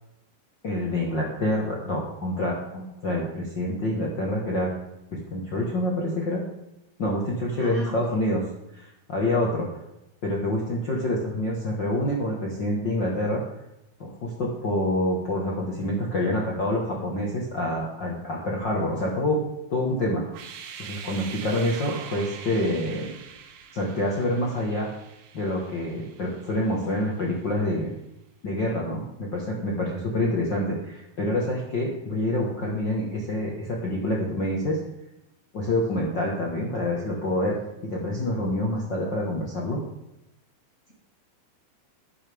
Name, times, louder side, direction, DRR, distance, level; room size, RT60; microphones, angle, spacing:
voice 1, 0.6-4.7 5.3-6.4 7.0-8.4 8.8-9.7 10.2-13.4 14.0-19.4 19.7-20.2 20.8-23.1 23.7-24.9 25.3-27.9 28.4-34.8 35.5-37.6 37.8-39.8, left 1 dB, 70° left, -3 dB, 1.0 m, -27 dB
voice 2, 7.5-8.2, right 3 dB, 45° left, -3 dB, 1.0 m, -38 dB
sound 1, 20.3-27.1, right 7 dB, 80° right, 3.2 m, -43 dB
12.0 x 10.0 x 3.6 m, 0.88 s
omnidirectional pair, 4.7 m